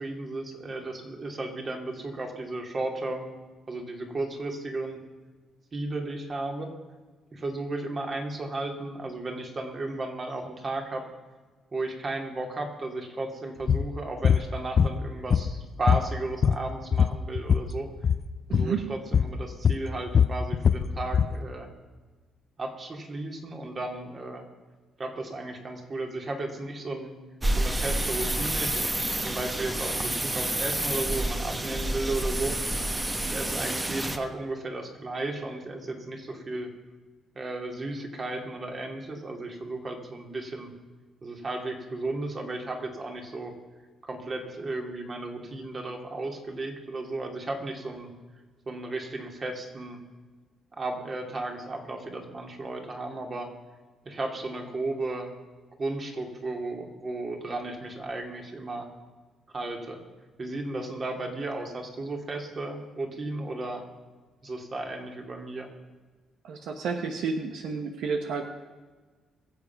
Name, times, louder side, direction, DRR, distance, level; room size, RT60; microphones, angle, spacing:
voice 1, 0.0-3.3 3.7-5.0 5.7-6.7 7.3-11.1 11.7-17.9 18.5-21.7 22.6-24.4 25.0-27.2 27.6-32.8 33.3-36.7 37.3-40.7 41.2-43.5 44.0-48.1 48.7-50.0 50.7-53.5 54.0-55.3 55.8-58.9 59.5-60.0 60.4-63.8 64.4-65.7, right 2 dB, 35° right, 3 dB, 2.7 m, -34 dB
sound 1, 13.7-13.9 14.2-14.4 14.8-15.6 15.9-17.7 18.0-18.2 18.5-18.7 19.1-19.4 19.6-21.3, left 7 dB, 50° left, 0.6 m, -22 dB
voice 2, 18.5-18.9 66.4-68.4, right 5 dB, 75° right, 5 dB, 1.1 m, -31 dB
sound 2, 27.4-34.2, right 1 dB, 15° right, 1.2 m, -29 dB
22.5 x 7.7 x 5.9 m, 1.3 s
cardioid pair, 90°, 0 cm